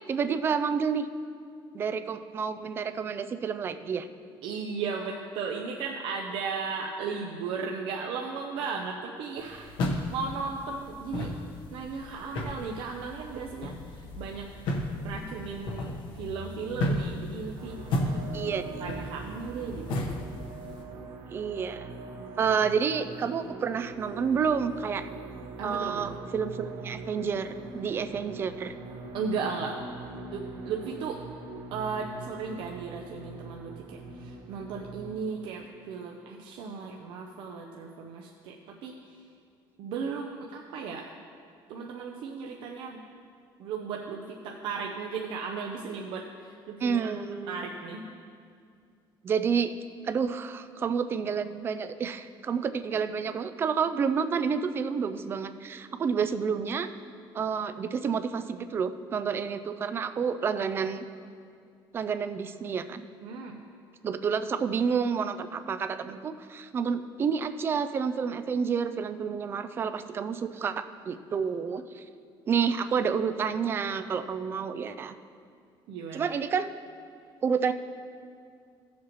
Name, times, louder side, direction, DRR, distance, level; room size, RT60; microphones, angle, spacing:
voice 1, 0.1-1.1 1.7-4.1 18.3-18.7 21.3-21.9 22.4-25.1 25.6-28.7 46.8-47.7 49.2-49.7 50.0-56.9 57.3-61.1 61.9-63.0 64.0-72.0 72.5-75.2 76.1-76.7 77.4-77.7, right 6 dB, 25° right, 11 dB, 0.3 m, -29 dB
voice 2, 4.4-9.7 10.1-11.3 11.7-13.7 14.2-14.5 15.0-15.9 16.2-17.8 18.1-18.3 18.8-20.0 25.6-26.1 29.1-29.8 30.3-31.2 31.7-38.9 39.8-41.1 41.7-43.0 43.6-47.1 47.5-48.0 63.2-63.6 75.9-76.3, right 5 dB, 65° right, 0 dB, 0.7 m, -36 dB
sound 1, 9.4-20.8, left 1 dB, 60° left, 1.2 m, -34 dB
sound 2, 17.6-35.6, right 4 dB, 80° right, 1.2 m, -42 dB
16.0 x 7.3 x 3.1 m, 2.3 s
cardioid pair, 180°, 9 cm